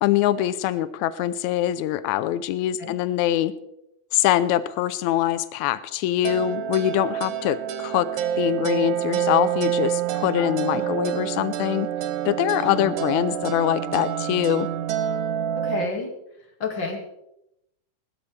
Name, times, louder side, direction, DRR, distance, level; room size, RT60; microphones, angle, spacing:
voice 1, 0.0-3.5 4.1-8.1 8.4-11.9 12.3-14.7, left 13 dB, 85° left, 14 dB, 2.0 m, -23 dB
sound 1, 6.2-15.9, right 10 dB, 85° right, 2.3 m, -27 dB
voice 2, 10.3-10.9 12.6-12.9 15.6-16.1 16.6-17.0, left 4 dB, 40° left, 2 dB, 2.7 m, -31 dB
20.0 x 12.5 x 3.3 m, 0.82 s
omnidirectional pair, 3.3 m